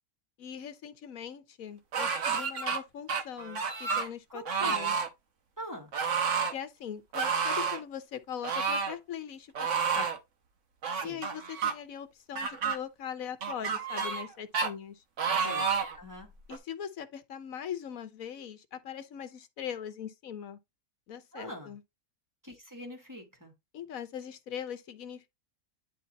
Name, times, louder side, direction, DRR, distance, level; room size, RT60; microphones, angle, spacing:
voice 1, 0.4-5.0 6.5-9.7 9.9-10.1 11.0-15.0 16.5-20.6 21.1-21.8 23.7-25.3, left 9 dB, 80° left, 1.3 m, -41 dB
sound 1, 1.9-2.8 3.1-4.1 4.4-5.1 5.9-6.5 7.1-7.8 8.4-8.9 9.5-10.2 10.8-11.7 12.3-12.8 13.4-14.3 14.5-14.7 15.2-16.0 16.5-16.6, right 6 dB, 60° right, 1.5 m, -30 dB
voice 2, 4.3-4.9 5.6-5.9 11.0-11.3 15.4-15.7 16.0-16.3 21.3-21.7 22.4-23.5, equal, 15° right, 1.8 m, -43 dB
10.0 x 3.4 x 4.1 m
omnidirectional pair, 1.5 m